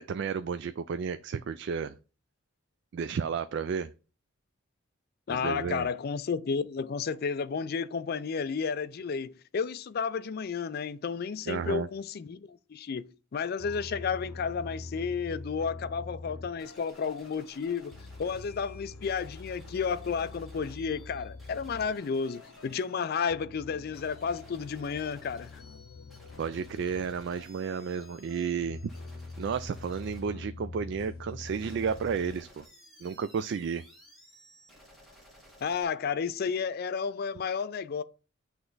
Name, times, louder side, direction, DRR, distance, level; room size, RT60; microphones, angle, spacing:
voice 1, 0.0-1.9 2.9-3.9 5.3-5.9 11.5-11.9 26.4-28.8 29.4-32.6 33.0-33.8, right 6 dB, 60° right, 0.3 m, -32 dB
voice 2, 5.3-17.9 18.2-25.6 35.6-38.0, left 6 dB, 50° left, 0.4 m, -32 dB
sound 1, 13.6-32.4, left 3 dB, 90° left, 0.7 m, -45 dB
sound 2, 16.6-35.8, equal, ahead, 1.8 m, -56 dB
8.0 x 3.3 x 3.9 m
head